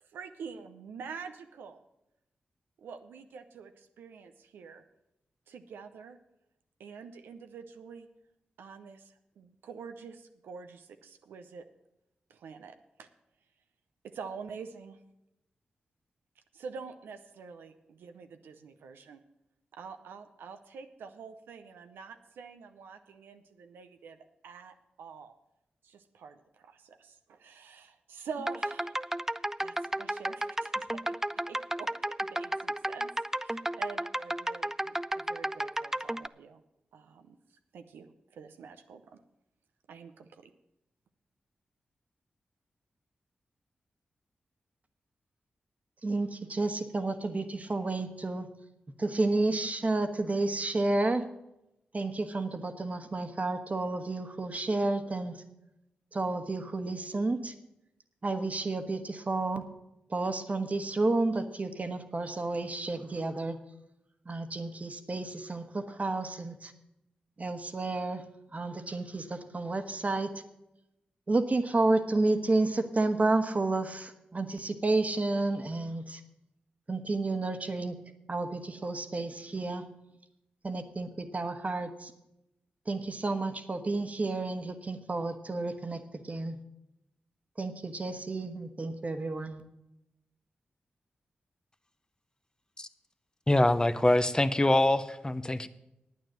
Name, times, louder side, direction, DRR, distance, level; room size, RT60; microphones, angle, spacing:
voice 1, 0.0-1.8 2.8-4.8 5.5-6.2 6.8-8.1 8.6-11.7 12.3-13.1 14.0-15.0 16.5-19.2 19.7-24.2 24.4-25.3 25.8-29.2 29.6-31.2 31.5-36.6 36.9-37.4 37.7-39.2 39.9-40.5, right 5 dB, 90° right, 7 dB, 0.7 m, -46 dB
sound 1, 28.4-36.3, right 1 dB, 10° right, 0.4 m, -33 dB
voice 2, 46.0-48.5 49.0-51.2 51.9-55.4 56.1-57.5 58.2-59.6 60.1-63.6 64.2-66.7 67.4-68.2 68.5-70.3 71.3-76.2 76.9-78.0 78.3-79.8 80.6-82.1 82.8-86.6 87.6-89.6, right 2 dB, 45° right, 7 dB, 1.4 m, -31 dB
voice 3, 93.5-95.7, left 1 dB, 20° left, 11 dB, 0.7 m, -24 dB
9.4 x 9.0 x 7.5 m, 0.87 s
supercardioid pair, 40°, 4 cm